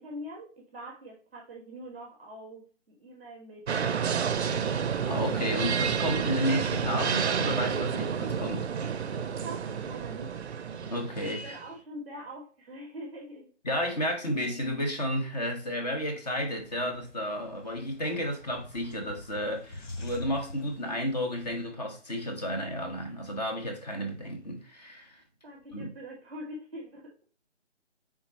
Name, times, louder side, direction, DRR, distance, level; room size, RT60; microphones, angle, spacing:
voice 1, 0.0-4.5 9.4-10.3 11.2-13.5 25.4-27.3, equal, 10° right, 0.7 m, -44 dB
sound 1, 3.7-11.7, right 7 dB, 65° right, 0.5 m, -30 dB
voice 2, 5.0-8.7 10.9-11.6 13.6-25.2 25.7-25.9, equal, 35° left, 0.9 m, -32 dB
sound 2, 16.6-21.7, left 2 dB, 80° left, 1.1 m, -45 dB
3.6 x 2.9 x 4.1 m
figure-of-eight pair, 155°, 36 cm